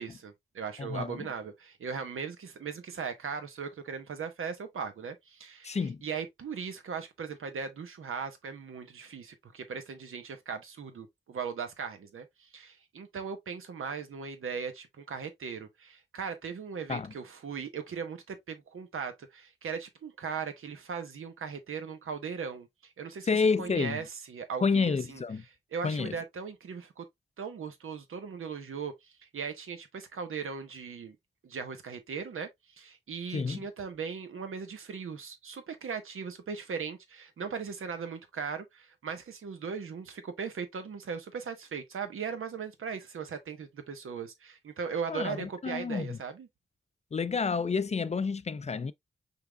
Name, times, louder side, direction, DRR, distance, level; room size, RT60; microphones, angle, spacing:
voice 1, 0.0-25.2 25.7-27.1 27.4-31.2 31.4-46.5, right 6 dB, 90° right, 1.0 m, -38 dB
voice 2, 0.8-1.3 5.6-6.0 16.9-17.1 23.3-24.0 24.6-25.4 25.8-26.2 33.3-33.6 45.1-46.2 47.1-48.9, left 5 dB, 35° left, 0.4 m, -29 dB
5.7 x 3.5 x 2.2 m
wide cardioid pair, 80°, 21 cm